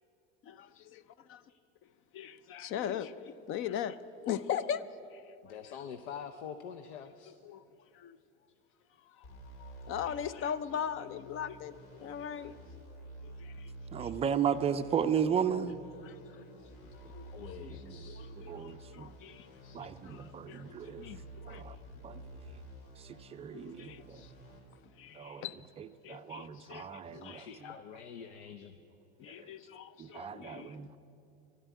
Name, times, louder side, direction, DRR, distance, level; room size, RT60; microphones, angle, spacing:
voice 1, 0.5-1.0 2.2-4.0 4.2-4.8 5.1-5.2 7.4-7.6 7.9-8.2 9.2-9.3 9.6-12.5 13.2-13.7 14.0-14.1 16.1-16.4 17.1-21.6 23.5-24.3 25.0-25.6 26.0-27.6 29.2-30.8, left 9 dB, 40° left, 0.6 m, -40 dB
voice 2, 5.4-7.3 16.6-16.7 17.3-18.3 20.9-21.3 27.1-28.8, left 7 dB, 85° left, 0.8 m, -46 dB
sound 1, 9.2-24.6, right 1 dB, 65° left, 4.3 m, -51 dB
voice 3, 13.9-15.8 17.7-18.1 18.5-19.1 19.7-21.1 21.5-21.8 22.0-22.6 23.0-24.2 25.1-25.5 25.8-27.7 29.3-29.5 30.0-31.0, right 8 dB, 20° right, 0.4 m, -35 dB
12.5 x 11.5 x 8.3 m
supercardioid pair, 135°, 33 cm